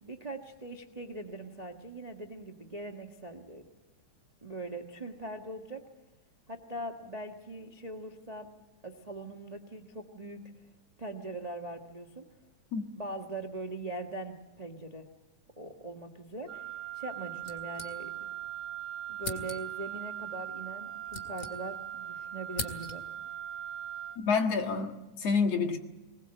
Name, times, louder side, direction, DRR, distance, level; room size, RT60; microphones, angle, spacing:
voice 1, 0.0-3.6 4.4-5.8 6.5-8.5 8.8-10.4 11.0-12.3 12.9-15.1 15.6-16.7 16.9-18.1 19.1-23.0, right 2 dB, 30° right, 3 dB, 0.7 m, -41 dB
Wind instrument woodwind instrument, 16.5-24.2, right 11 dB, 45° right, 1.5 m, -40 dB
sound 1, 17.4-18.4 18.7-18.8 19.2-19.9 20.7-22.0 22.2-23.2, left 3 dB, 30° left, 2.3 m, -41 dB
voice 2, 24.2-25.8, left 5 dB, 60° left, 5 dB, 2.7 m, -28 dB
21.5 x 20.5 x 7.9 m, 1.1 s
omnidirectional pair, 3.4 m